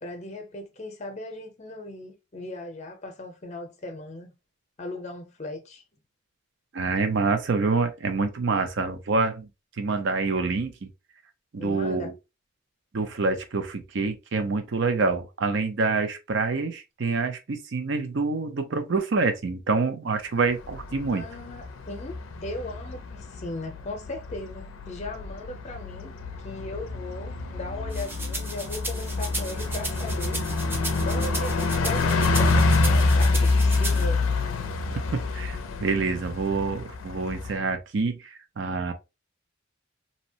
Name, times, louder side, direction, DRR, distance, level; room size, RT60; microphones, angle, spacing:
voice 1, 0.0-4.3 4.8-5.8 11.6-12.1 21.1-26.1 26.4-30.4 30.7-34.6 35.0-35.2, left 2 dB, 35° left, 0.6 m, -38 dB
voice 2, 6.7-9.5 9.8-10.9 11.5-12.1 12.9-21.2 35.1-38.9, right 4 dB, 65° right, 0.5 m, -26 dB
Bus, 20.5-37.6, left 3 dB, 90° left, 0.4 m, -27 dB
sound 1, 27.9-34.1, right 2 dB, 10° right, 0.4 m, -35 dB
2.7 x 2.0 x 2.6 m
head